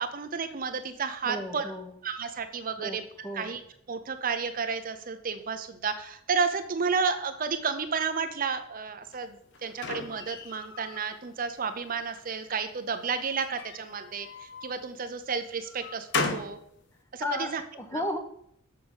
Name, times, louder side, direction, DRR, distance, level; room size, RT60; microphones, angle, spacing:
voice 1, 0.0-1.7 2.0-3.0 3.3-3.6 3.9-9.4 9.6-16.6 17.1-17.6 17.9-18.0, right 5 dB, 45° right, 8 dB, 0.7 m, -31 dB
voice 2, 1.2-1.9 2.8-3.5 17.2-18.2, left 1 dB, 10° left, 5 dB, 1.0 m, -34 dB
sound 1, 9.1-11.1 11.5-12.2 13.2-14.7 15.3-16.6, left 4 dB, 60° left, 0.9 m, -36 dB
7.1 x 6.5 x 5.5 m, 0.70 s
head